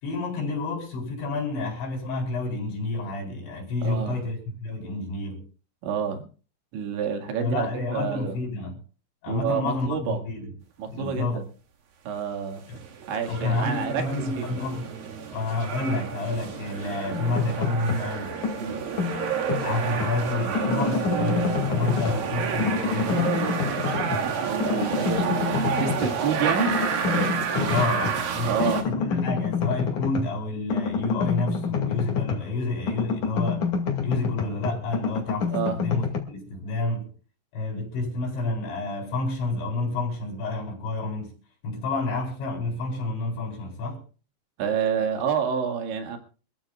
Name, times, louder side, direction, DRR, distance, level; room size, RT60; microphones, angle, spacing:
voice 1, 0.0-5.5 7.4-8.8 9.2-10.5 10.9-11.5 12.7-12.8 13.3-14.9 15.3-18.3 19.6-23.4 27.7-33.7 34.0-37.1 37.5-41.3 41.6-44.0, left 2 dB, 75° left, 6.4 m, -29 dB
voice 2, 3.8-4.2 5.8-6.3 6.7-8.4 9.3-10.2 10.8-11.4 12.1-12.6 13.1-14.6 18.6-18.8 24.4-26.8 27.1-27.7 28.4-28.8 35.5-35.8 44.6-46.2, right 7 dB, 80° right, 4.3 m, -29 dB
sound 1, 12.7-28.8, right 6 dB, 60° right, 3.3 m, -30 dB
sound 2, 17.1-18.1 18.4-20.2 20.5-22.3 22.6-24.3 24.6-26.2 26.6-28.2 28.6-32.6 32.9-36.2, left 6 dB, 50° left, 3.3 m, -28 dB
26.5 x 14.5 x 2.4 m
omnidirectional pair, 5.2 m